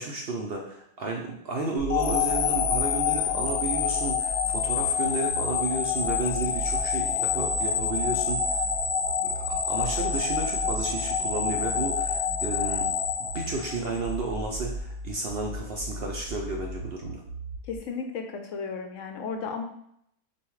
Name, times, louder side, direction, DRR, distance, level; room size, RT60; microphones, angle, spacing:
voice 1, 0.0-8.6 9.2-13.0 13.3-17.2, right 3 dB, 65° right, 0 dB, 0.6 m, -32 dB
sound 1, 1.8-17.8, right 1 dB, 80° right, 1.4 m, -37 dB
sound 2, 1.9-14.1, left 7 dB, 85° left, 1.1 m, -27 dB
voice 2, 17.7-19.6, left 5 dB, 65° left, 4 dB, 0.8 m, -34 dB
6.9 x 2.3 x 3.1 m, 0.72 s
omnidirectional pair, 1.6 m